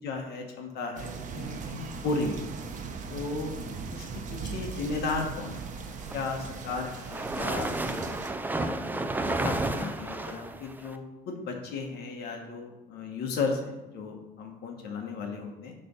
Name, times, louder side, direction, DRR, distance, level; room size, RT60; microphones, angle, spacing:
voice 1, 0.0-2.5 3.1-3.6 3.9-5.6 6.1-8.1 8.6-8.9 9.2-15.7, left 3 dB, 75° left, 2 dB, 1.3 m, -35 dB
sound 1, 1.0-8.3, right 5 dB, 50° right, 0.9 m, -39 dB
sound 2, 5.9-11.0, right 2 dB, 10° right, 0.5 m, -32 dB
8.5 x 3.4 x 5.6 m, 1.0 s
cardioid pair, 110°, 17 cm